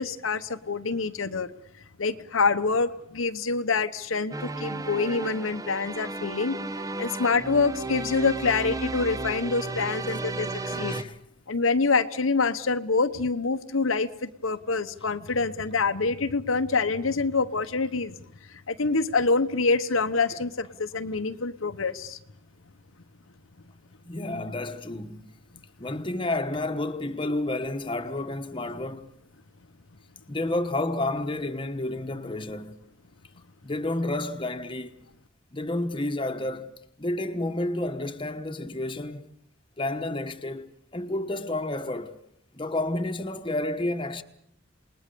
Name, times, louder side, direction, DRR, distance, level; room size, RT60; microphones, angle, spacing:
voice 1, 0.0-1.5 2.0-6.6 7.0-10.9 11.5-18.2 18.7-22.2, left 4 dB, 85° left, 1.0 m, -26 dB
sound 1, 4.3-11.0, right 3 dB, 15° right, 0.9 m, -34 dB
voice 2, 10.7-11.2 24.0-25.3 25.8-29.1 30.3-32.8 33.6-34.9 35.5-36.7 37.0-39.3 39.8-42.1 42.5-44.2, left 2 dB, 25° left, 1.3 m, -30 dB
28.0 x 20.0 x 6.9 m
head